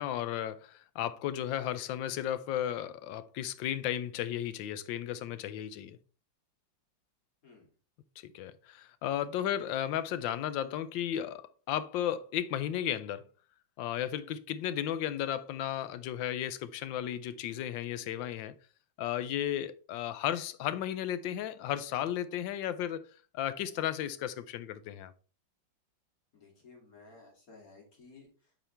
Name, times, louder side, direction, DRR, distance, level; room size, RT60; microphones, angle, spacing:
voice 1, 0.0-6.0 8.2-13.2 13.8-18.5 19.0-23.0 23.3-25.1, left 11 dB, 85° left, 1.3 m, -34 dB
voice 2, 26.3-28.7, left 3 dB, 50° left, 2.7 m, -56 dB
8.8 x 4.8 x 3.3 m
omnidirectional pair, 2.0 m